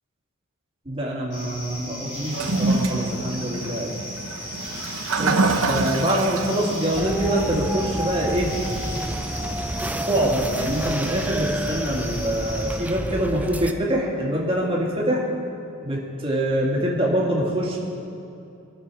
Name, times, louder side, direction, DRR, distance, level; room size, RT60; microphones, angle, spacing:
voice 1, 0.9-3.9 5.2-8.5 10.1-15.2 15.8-17.8, right 1 dB, 25° right, -3 dB, 2.4 m, -25 dB
sound 1, 1.3-12.8, left 1 dB, 60° left, 3.3 m, -36 dB
Toilet flush, 2.3-11.5, right 3 dB, 70° right, 0.9 m, -28 dB
sound 2, 6.9-13.7, right 1 dB, 5° right, 0.4 m, -29 dB
22.0 x 7.4 x 4.8 m, 2.7 s
head